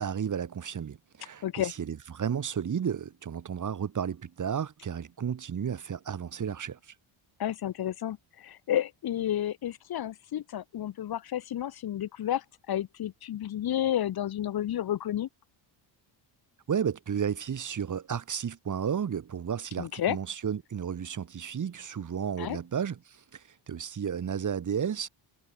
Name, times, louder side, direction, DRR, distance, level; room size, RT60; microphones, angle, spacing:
voice 1, 0.0-6.8 16.7-25.1, right 8 dB, 40° right, 5.4 m, -33 dB
voice 2, 1.4-1.7 7.4-15.3 19.8-20.2 22.4-22.6, left 11 dB, 50° left, 1.6 m, -31 dB
cardioid pair, 155°, 47 cm